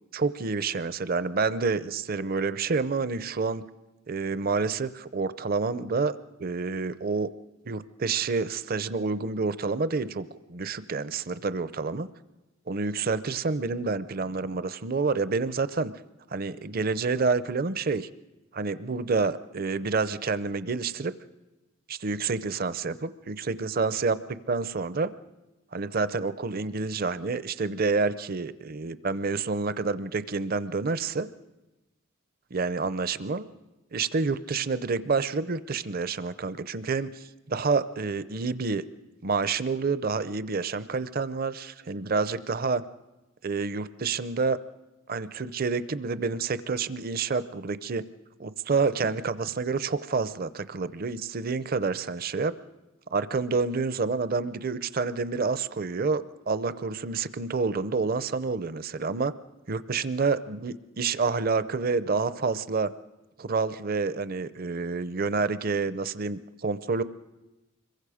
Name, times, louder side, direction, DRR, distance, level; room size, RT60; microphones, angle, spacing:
voice 1, 0.1-3.6 4.1-7.3 7.6-12.1 12.7-15.9 16.3-18.1 18.5-21.1 21.9-25.1 25.7-31.3 32.5-33.5 33.9-38.8 39.2-42.8 43.4-44.6 45.1-48.0 48.4-52.5 53.1-59.3 59.7-62.9 63.4-67.0, right 4 dB, 45° right, 14 dB, 0.6 m, -28 dB
26.0 x 22.5 x 5.0 m, 1.0 s
head